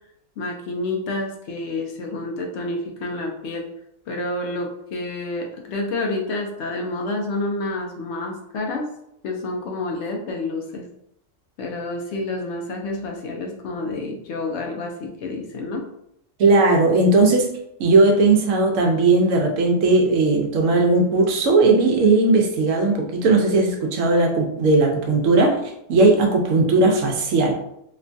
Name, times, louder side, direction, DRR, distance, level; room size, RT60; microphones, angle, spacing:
voice 1, 0.4-3.7 4.1-8.9 9.2-10.8 11.6-15.9, left 2 dB, 70° left, 1 dB, 0.8 m, -29 dB
voice 2, 16.4-17.5 17.8-25.5 25.9-27.5, right 3 dB, 80° right, 2 dB, 1.0 m, -17 dB
3.0 x 2.2 x 2.5 m, 0.75 s
omnidirectional pair, 1.3 m